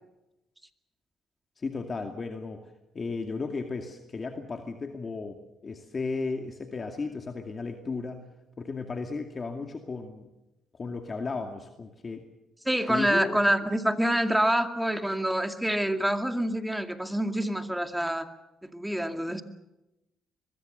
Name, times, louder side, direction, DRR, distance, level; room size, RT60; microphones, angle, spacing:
voice 1, 1.6-8.2 8.6-10.2 10.7-12.2 12.9-13.4, left 4 dB, 35° left, 4 dB, 2.3 m, -35 dB
voice 2, 12.7-18.3 18.7-19.4, right 1 dB, 5° right, 7 dB, 2.2 m, -26 dB
23.5 x 21.5 x 6.8 m, 0.95 s
cardioid pair, 90°, 0 cm